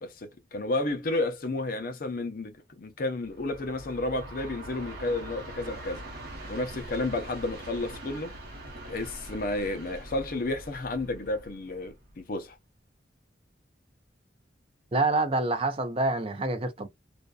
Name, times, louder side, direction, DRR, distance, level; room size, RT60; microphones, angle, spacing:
voice 1, 0.0-6.0 6.5-8.3 8.9-12.5, left 2 dB, 50° left, 0.6 m, -32 dB
Train, 3.2-12.4, right 1 dB, 55° right, 1.0 m, -43 dB
voice 2, 14.9-16.9, right 2 dB, 30° right, 0.5 m, -27 dB
2.5 x 2.2 x 2.3 m
head